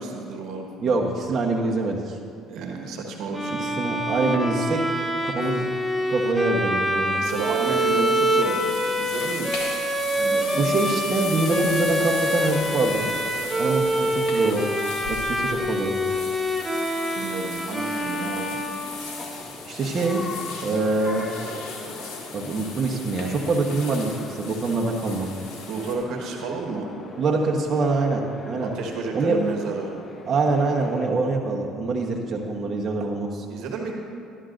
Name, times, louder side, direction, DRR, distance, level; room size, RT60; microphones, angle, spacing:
voice 1, 0.0-0.7 2.5-4.1 7.1-8.7 9.0-9.6 10.1-10.7 17.1-18.5 25.7-26.9 28.6-29.9 33.5-33.9, right 4 dB, 70° right, 1 dB, 1.3 m, -31 dB
voice 2, 0.8-2.2 3.6-4.9 5.2-5.7 6.1-7.2 10.5-13.1 13.4-14.7 15.1-16.0 19.7-20.3 20.6-21.3 22.3-25.3 27.2-28.7 29.1-29.4 30.2-33.4, right 3 dB, 40° right, -1 dB, 1.1 m, -24 dB
Bowed string instrument, 3.3-19.4, equal, 5° right, 0.8 m, -26 dB
sound 1, 7.2-25.9, left 4 dB, 65° left, 1.8 m, -38 dB
sound 2, 11.7-31.1, left 3 dB, 35° left, 0.8 m, -41 dB
13.0 x 11.0 x 2.6 m, 2.4 s
supercardioid pair, 75°, 0 cm